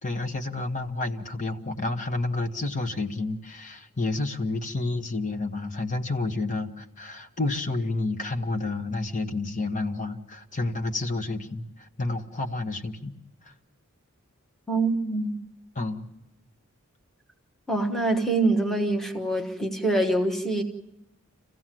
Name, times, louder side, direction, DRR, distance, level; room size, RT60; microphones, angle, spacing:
voice 1, 0.0-13.2 13.4-13.5 15.7-16.1, left 2 dB, 35° left, 6 dB, 1.2 m, -30 dB
voice 2, 14.7-15.4 17.7-20.6, right 2 dB, ahead, 4 dB, 1.2 m, -25 dB
26.5 x 16.0 x 7.6 m, 0.92 s
head